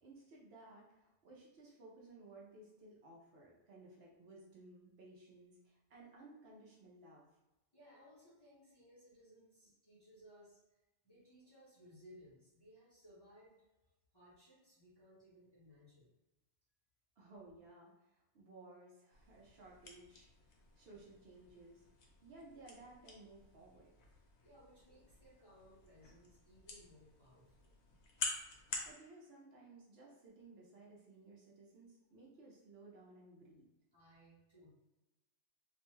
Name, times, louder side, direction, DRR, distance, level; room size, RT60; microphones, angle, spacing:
voice 1, 0.0-7.3 17.2-21.8 22.2-23.9 28.8-33.7, right 2 dB, 65° right, -3 dB, 0.8 m, -58 dB
voice 2, 7.7-10.6 11.0-13.6 14.1-16.1 24.4-27.7 33.9-34.7, equal, 25° left, -9 dB, 0.6 m, -62 dB
sound 1, 19.1-28.9, left 3 dB, 70° left, 0.8 m, -49 dB
2.5 x 2.2 x 3.0 m, 1.0 s
omnidirectional pair, 1.2 m